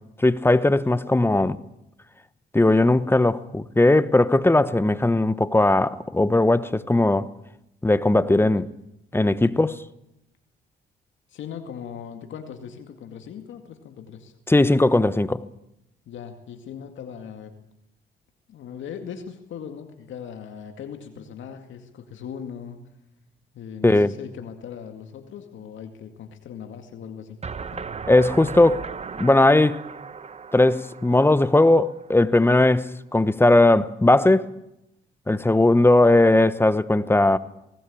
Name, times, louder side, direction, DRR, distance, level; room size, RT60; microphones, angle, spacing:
voice 1, 0.2-1.6 2.5-7.3 7.8-8.7 9.1-9.8 14.5-15.4 23.8-24.1 28.1-28.9 29.2-29.8 30.5-34.5 35.3-37.4, left 2 dB, 10° left, 1.0 m, -18 dB
voice 2, 8.3-8.7 9.4-9.8 11.3-14.3 16.1-17.6 18.5-22.8 23.5-27.4 27.7-27.8, left 7 dB, 75° left, 2.2 m, -39 dB
sound 1, 27.4-32.4, right 5 dB, 35° right, 1.0 m, -37 dB
19.0 x 19.0 x 8.6 m
cardioid pair, 90°, 20 cm